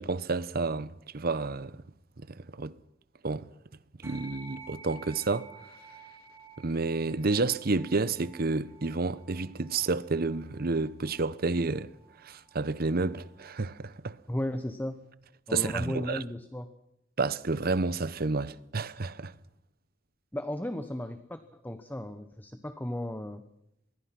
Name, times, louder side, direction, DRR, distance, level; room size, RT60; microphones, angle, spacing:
voice 1, 0.0-1.8 2.3-2.7 3.2-3.5 4.0-5.5 6.6-11.9 12.2-14.2 15.5-16.2 17.2-19.3, right 3 dB, 55° right, 0.8 m, -30 dB
sound 1, 4.0-13.7, right 3 dB, 15° right, 3.0 m, -53 dB
voice 2, 14.3-15.0 15.5-16.7 20.3-23.4, left 1 dB, 10° left, 1.0 m, -35 dB
26.0 x 21.5 x 6.0 m
head